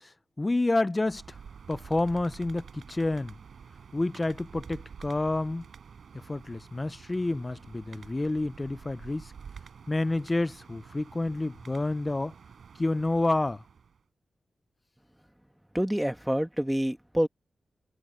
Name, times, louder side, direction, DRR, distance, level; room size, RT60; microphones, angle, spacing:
voice 1, 0.4-1.4 1.7-3.3 3.9-5.7 6.3-9.3 9.9-12.3 12.8-13.6, left 2 dB, 25° left, 0.4 m, -29 dB
sound 1, 1.0-14.0, right 6 dB, 75° right, 4.9 m, -49 dB
voice 2, 15.7-17.3, equal, 5° right, 1.7 m, -27 dB
cardioid pair, 80°, 0 cm